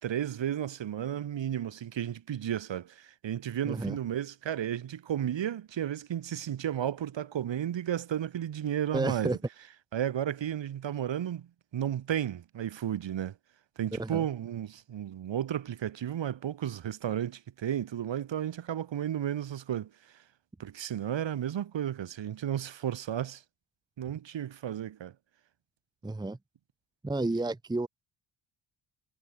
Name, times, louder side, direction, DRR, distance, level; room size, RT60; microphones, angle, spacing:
voice 1, 0.0-9.4 9.9-11.5 11.7-13.3 13.8-19.9 20.6-23.4 24.0-25.1, right 10 dB, 60° right, 3.5 m, -33 dB
voice 2, 3.6-4.0 8.9-9.4 13.9-14.3 26.0-26.4 27.0-27.9, right 2 dB, 10° right, 1.0 m, -31 dB
wide cardioid pair, 155°, 49 cm